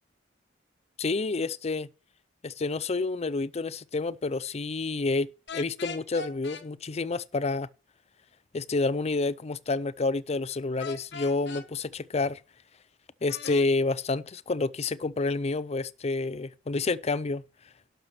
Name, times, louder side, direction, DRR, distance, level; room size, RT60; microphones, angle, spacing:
voice 1, 1.0-1.9 2.4-7.7 8.5-12.4 13.2-17.4, left 3 dB, 35° left, 0.5 m, -29 dB
sound 1, 5.5-6.6 10.8-11.7 13.3-13.7, left 4 dB, 65° left, 1.3 m, -39 dB
11.5 x 6.7 x 5.9 m
head